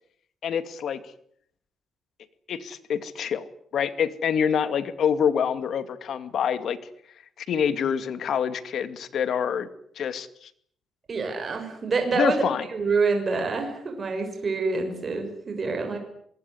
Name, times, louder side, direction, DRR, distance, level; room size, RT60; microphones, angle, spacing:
voice 1, 0.4-1.0 2.5-3.4 3.7-6.8 7.4-9.7 10.0-10.5 12.1-12.7, left 7 dB, 60° left, 12 dB, 2.3 m, -26 dB
voice 2, 11.1-12.4 12.7-16.0, right 4 dB, 30° right, 4 dB, 6.2 m, -26 dB
25.0 x 21.5 x 9.8 m, 0.68 s
cardioid pair, 140°, 0 cm